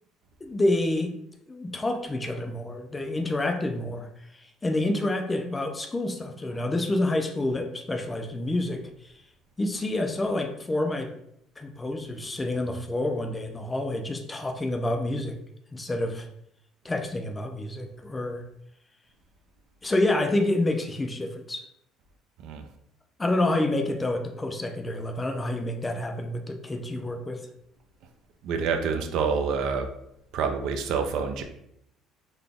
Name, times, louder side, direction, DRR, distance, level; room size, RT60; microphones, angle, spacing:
voice 1, 0.4-1.1 1.5-4.1 4.3-9.1 9.6-11.1 11.6-15.4 15.7-16.3 16.8-18.4 19.8-21.6 23.2-27.4, left 1 dB, 15° left, 4 dB, 0.4 m, -28 dB
voice 2, 28.4-29.9 30.3-31.4, right 5 dB, 65° right, 6 dB, 0.5 m, -27 dB
3.9 x 2.2 x 3.5 m, 0.74 s
cardioid pair, 140°, 0 cm